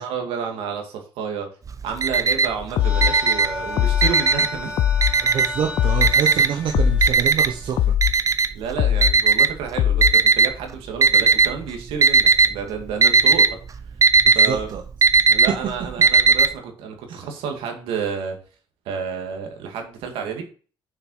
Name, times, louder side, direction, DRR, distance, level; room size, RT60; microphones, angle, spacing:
voice 1, 0.0-1.5 1.8-4.8 8.5-13.6 14.3-14.7 15.3-18.4 18.9-20.4, right 6 dB, 85° right, 3 dB, 2.1 m, -30 dB
Alarm, 1.7-2.6 3.0-4.6 5.0-5.7 6.0-10.5 11.0-11.6 11.9-12.5 12.8-16.5, right 4 dB, 35° right, 0.8 m, -16 dB
sound 1, 2.7-7.9, left 1 dB, 10° right, 2.8 m, -33 dB
sound 2, 2.8-3.2 3.8-4.2 4.8-5.2 5.8-6.2 6.7-7.1 7.8-8.2 8.8-9.2 9.8-10.2, left 11 dB, 70° left, 0.5 m, -20 dB
voice 2, 5.2-7.9 14.2-14.8 15.1-15.2 17.1-17.3, right 7 dB, 65° right, 3 dB, 1.1 m, -27 dB
6.9 x 5.9 x 5.5 m, 0.40 s
cardioid pair, 80°, 9 cm